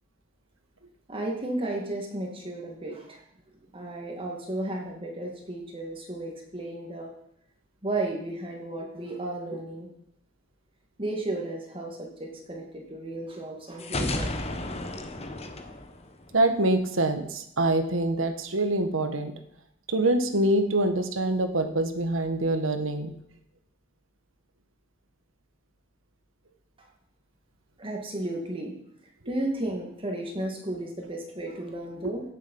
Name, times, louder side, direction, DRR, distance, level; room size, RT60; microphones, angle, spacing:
voice 1, 1.1-3.2 3.7-7.1 7.8-9.9 11.0-14.3 27.8-28.7 29.3-32.2, right 1 dB, 25° right, 1 dB, 2.1 m, -33 dB
sound 1, 13.8-16.6, left 2 dB, 30° left, 1.2 m, -33 dB
voice 2, 16.3-19.3 19.9-23.1, right 1 dB, 90° right, 7 dB, 1.5 m, -25 dB
17.5 x 7.5 x 5.5 m, 0.74 s
head